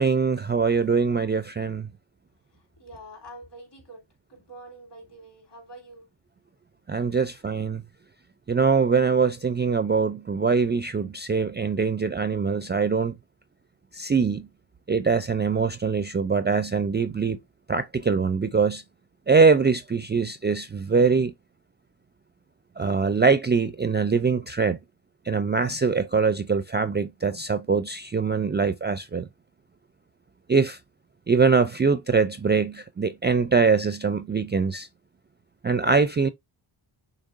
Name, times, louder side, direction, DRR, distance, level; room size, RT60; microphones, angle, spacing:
voice 1, 0.0-1.9 6.9-7.8 8.5-13.2 13.9-14.5 14.9-17.4 17.7-18.8 19.3-21.3 22.8-24.8 25.3-29.3 30.5-30.8 31.3-34.9 35.6-36.3, right 5 dB, 25° right, 0.4 m, -23 dB
voice 2, 2.5-6.1 7.1-7.3, right 1 dB, 55° left, 3.1 m, -46 dB
6.4 x 3.2 x 2.4 m
cardioid pair, 70°, 48 cm